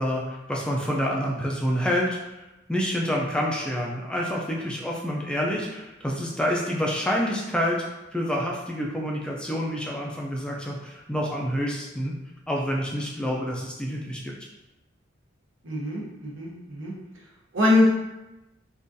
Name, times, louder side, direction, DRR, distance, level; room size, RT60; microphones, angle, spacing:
voice 1, 0.0-2.4 2.7-7.8 8.1-12.1 12.5-14.3, equal, 5° left, -2 dB, 0.3 m, -28 dB
voice 2, 15.6-16.9 17.5-17.9, left 2 dB, 70° right, -3 dB, 0.8 m, -23 dB
3.7 x 2.4 x 2.6 m, 0.99 s
head